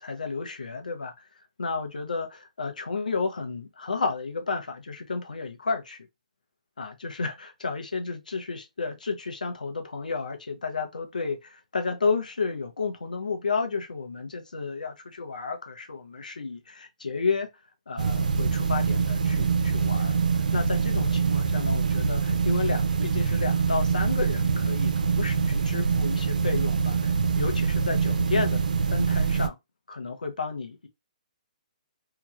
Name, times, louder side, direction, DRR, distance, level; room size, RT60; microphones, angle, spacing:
voice 1, 0.0-6.1 6.8-17.5 17.9-29.6 29.9-30.9, left 4 dB, 85° left, 0.8 m, -32 dB
sound 1, 18.0-29.5, right 5 dB, 80° right, 0.4 m, -24 dB
2.9 x 2.3 x 2.8 m
hypercardioid pair, 140°, 4 cm